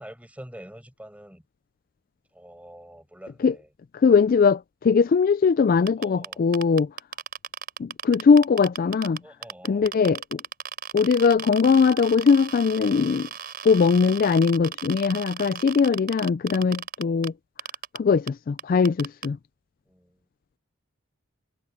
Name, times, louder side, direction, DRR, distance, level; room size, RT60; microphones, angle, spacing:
voice 1, 0.0-1.4 2.3-3.7 6.0-6.5 9.2-9.9 17.0-17.2 19.9-20.3, right 1 dB, 5° right, 5.7 m, -46 dB
voice 2, 3.9-6.9 7.8-9.2 9.6-10.4 10.9-13.3 13.6-17.3 17.9-19.4, left 5 dB, 40° left, 0.3 m, -20 dB
sound 1, 5.9-9.2 9.4-17.3 17.6-18.0 18.3-18.4 18.6-19.3, right 7 dB, 45° right, 4.2 m, -35 dB
head